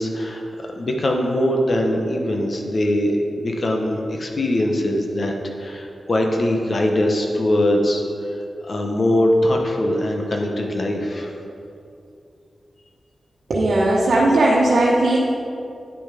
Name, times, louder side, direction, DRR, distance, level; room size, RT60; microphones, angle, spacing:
voice 1, 0.0-5.3 5.6-8.0 8.3-11.3, left 1 dB, 50° left, 2 dB, 1.0 m, -22 dB
voice 2, 13.5-15.2, right 1 dB, 75° right, -6 dB, 1.1 m, -17 dB
9.5 x 6.6 x 5.1 m, 2.6 s
wide cardioid pair, 80°, 0 cm